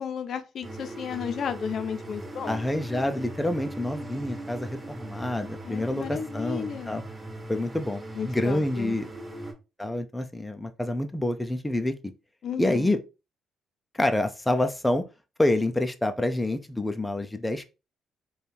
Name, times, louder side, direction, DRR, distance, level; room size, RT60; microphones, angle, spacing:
voice 1, 0.0-2.6 5.7-7.0 8.1-9.0 12.4-12.9, left 7 dB, 60° left, 0.6 m, -33 dB
sound 1, 0.6-9.5, right 2 dB, 30° right, 1.3 m, -39 dB
voice 2, 2.5-7.0 7.5-9.1 9.8-12.1 12.6-13.0 13.9-15.0 15.4-17.7, left 1 dB, 10° left, 0.5 m, -27 dB
3.4 x 2.3 x 4.3 m
cardioid pair, 90°, 0 cm